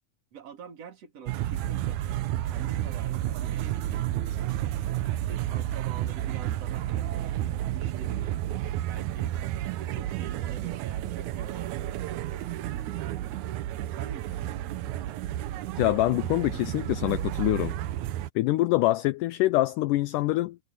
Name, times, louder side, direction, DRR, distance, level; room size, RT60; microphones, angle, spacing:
voice 1, 0.3-2.0 2.4-4.8 5.3-8.4 8.9-9.4 9.8-13.5 14.0-15.2, right 6 dB, 45° right, 4.1 m, -47 dB
sound 1, 1.3-18.3, right 13 dB, 75° right, 1.8 m, -31 dB
voice 2, 15.8-17.8 18.4-20.6, left 17 dB, 80° left, 1.9 m, -25 dB
omnidirectional pair, 4.2 m